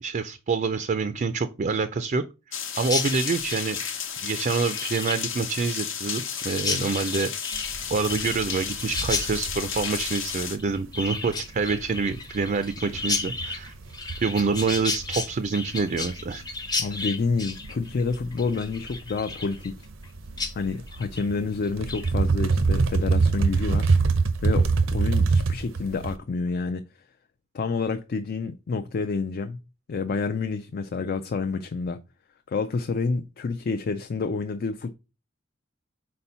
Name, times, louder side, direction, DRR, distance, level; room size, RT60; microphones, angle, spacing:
voice 1, 0.0-2.2 2.5-3.8 4.2-7.3 7.9-13.7 14.2-16.4, right 4 dB, 40° right, 0.4 m, -27 dB
sound 1, 2.5-10.6, left 8 dB, 80° left, 1.0 m, -33 dB
Chirp tweet, 2.8-20.1 20.4-20.5 20.9-21.3 21.6-22.1, left 4 dB, 20° left, 0.7 m, -33 dB
sound 2, 7.5-26.1, right 4 dB, 80° right, 0.7 m, -26 dB
voice 2, 16.8-19.9 20.5-23.9 24.4-26.9 27.5-29.6 29.9-32.0 32.5-34.9, left 4 dB, 50° left, 0.4 m, -28 dB
4.4 x 4.2 x 5.4 m
head